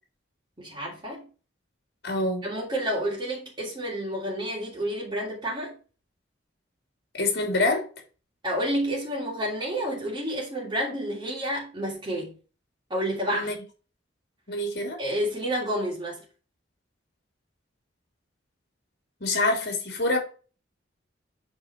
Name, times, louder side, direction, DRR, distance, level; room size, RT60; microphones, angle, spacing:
voice 1, 0.6-1.3 2.4-5.8 8.4-12.3 12.9-13.5 15.0-16.2, equal, 20° right, 2.9 m, -30 dB
voice 2, 2.0-2.5 7.1-7.8 13.3-13.5 14.5-15.0 19.2-20.2, left 2 dB, 55° left, 3.3 m, -26 dB
8.4 x 4.7 x 4.7 m
head